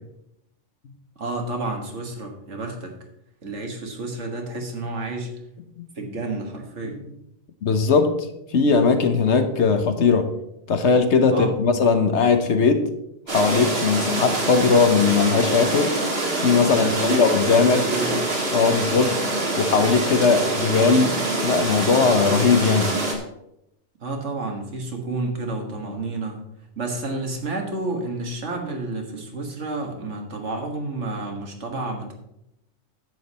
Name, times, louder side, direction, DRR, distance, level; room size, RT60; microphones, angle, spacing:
voice 1, 1.2-2.9 3.4-5.3 6.0-7.0 11.3-11.6 16.6-17.2 17.5-18.3 19.0-19.1 24.0-26.4 26.8-32.1, right 2 dB, 75° right, 2 dB, 2.0 m, -30 dB
voice 2, 7.6-8.2 8.5-10.3 10.7-12.9 13.3-15.9 16.4-17.9 18.5-19.2 19.6-23.0, left 5 dB, 70° left, 8 dB, 1.3 m, -19 dB
sound 1, 13.3-23.2, right 2 dB, 55° right, 2.0 m, -25 dB
10.5 x 8.0 x 4.2 m, 0.83 s
omnidirectional pair, 1.2 m